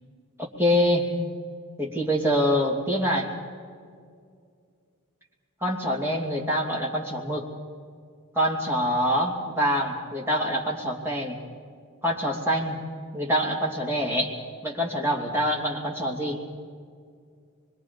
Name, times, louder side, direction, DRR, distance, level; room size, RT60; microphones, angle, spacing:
voice 1, 0.4-1.1 1.8-3.3 5.6-7.5 8.3-11.4 12.0-12.8 13.1-14.3 14.6-16.4, equal, 10° right, -3 dB, 2.8 m, -25 dB
25.5 x 23.0 x 5.3 m, 2.2 s
head